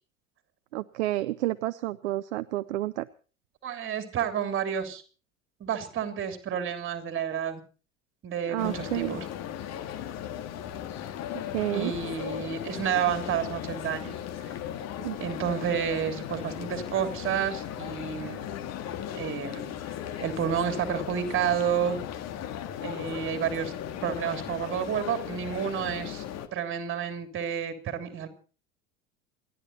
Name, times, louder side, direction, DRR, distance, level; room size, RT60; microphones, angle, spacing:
voice 1, 0.7-3.1 8.5-9.2 11.5-11.9 15.0-15.2, right 16 dB, 60° right, 14 dB, 0.7 m, -30 dB
voice 2, 3.6-5.0 5.6-7.6 8.2-9.3 11.7-14.1 14.4-14.5 15.2-18.5 19.1-19.8 20.2-22.0 22.8-23.7 24.0-26.2 26.5-28.3, right 8 dB, 30° right, 7 dB, 3.2 m, -30 dB
sound 1, 8.6-26.5, left 10 dB, 40° left, 1.8 m, -37 dB
28.5 x 11.0 x 4.2 m, 0.38 s
figure-of-eight pair, 75°, 40 cm